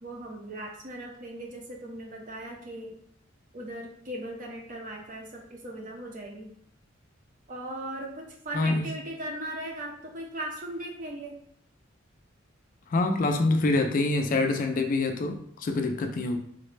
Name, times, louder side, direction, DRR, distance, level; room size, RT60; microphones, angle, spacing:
voice 1, 0.0-2.9 3.5-6.5 7.5-11.4, right 1 dB, 45° right, 0 dB, 0.7 m, -38 dB
voice 2, 8.5-8.9 12.9-16.4, left 2 dB, 45° left, 5 dB, 0.3 m, -26 dB
3.8 x 2.1 x 3.2 m, 0.64 s
head